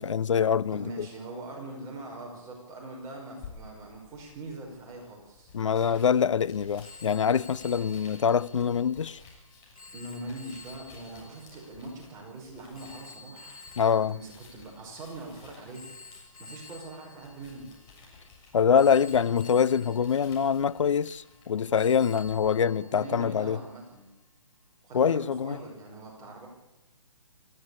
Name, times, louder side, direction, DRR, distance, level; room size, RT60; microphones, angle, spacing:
voice 1, 0.0-1.1 5.5-9.2 13.8-14.2 18.5-23.6 24.9-25.6, left 7 dB, 60° left, 0.7 m, -24 dB
voice 2, 0.7-5.5 9.9-15.9 16.4-17.7 22.6-24.1 24.8-26.5, right 2 dB, 20° right, 5.5 m, -42 dB
sound 1, 3.4-22.5, left 4 dB, 25° left, 7.3 m, -54 dB
Telephone, 6.8-15.2 15.7-18.3 18.8-21.5 21.8-23.5, left 3 dB, 85° left, 2.0 m, -51 dB
25.0 x 16.0 x 8.5 m
figure-of-eight pair, 140°, 18 cm